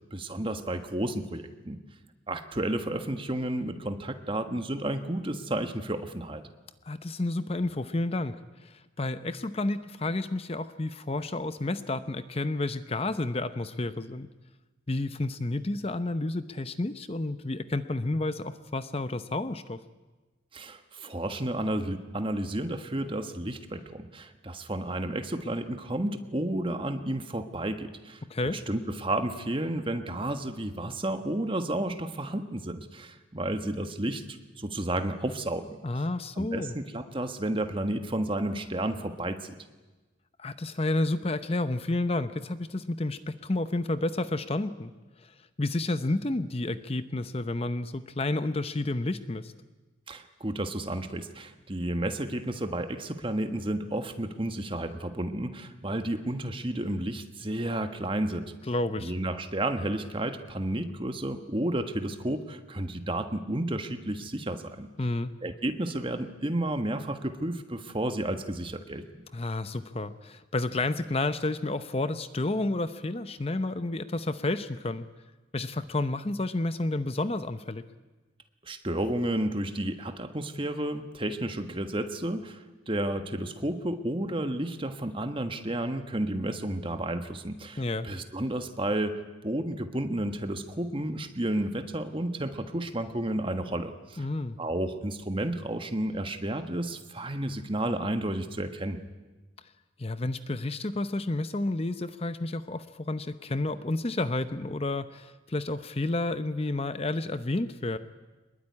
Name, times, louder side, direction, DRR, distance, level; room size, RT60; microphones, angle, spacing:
voice 1, 0.1-1.8 2.3-6.4 20.5-35.8 36.4-39.6 50.1-58.5 59.0-64.9 65.4-69.0 78.6-94.3 94.6-99.0, right 1 dB, 25° right, 8 dB, 1.4 m, -32 dB
voice 2, 6.8-14.3 14.9-19.8 28.3-28.6 35.8-36.7 40.4-44.9 45.2-45.3 45.6-49.5 58.7-59.1 65.0-65.3 69.3-75.1 75.5-77.8 87.8-88.1 94.2-94.6 100.0-108.0, left 2 dB, 30° left, 12 dB, 0.7 m, -30 dB
24.0 x 21.0 x 9.7 m, 1.2 s
head